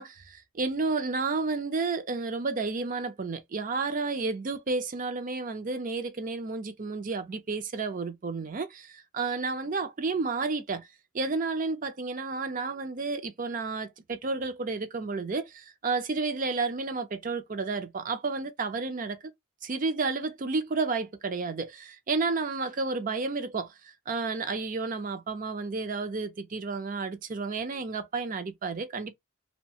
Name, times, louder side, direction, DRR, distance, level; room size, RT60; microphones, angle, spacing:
voice 1, 0.0-10.9 11.1-19.2 19.6-29.1, right 4 dB, 40° right, 0.5 m, -31 dB
3.0 x 2.2 x 2.7 m
head